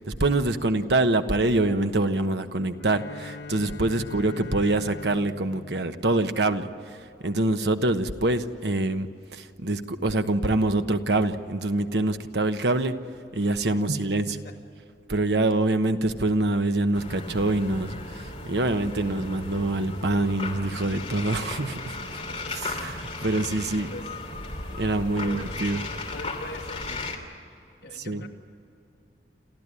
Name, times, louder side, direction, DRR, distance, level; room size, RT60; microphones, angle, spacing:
voice 1, 0.0-6.7 7.2-9.1 9.3-12.9 13.3-14.4 15.1-22.0 22.6-22.7 23.2-23.9 24.8-25.8 27.9-28.2, right 2 dB, 75° right, 8 dB, 1.2 m, -25 dB
Bowed string instrument, 2.8-7.1, left 4 dB, 90° left, 1.0 m, -42 dB
voice 2, 13.7-14.6 22.3-22.9 23.7-24.1 25.1-27.2 27.8-28.3, left 2 dB, 60° left, 0 dB, 2.4 m, -44 dB
sound 1, 16.9-27.2, left 2 dB, 30° left, 3.1 m, -36 dB
29.0 x 14.0 x 9.9 m, 2.7 s
head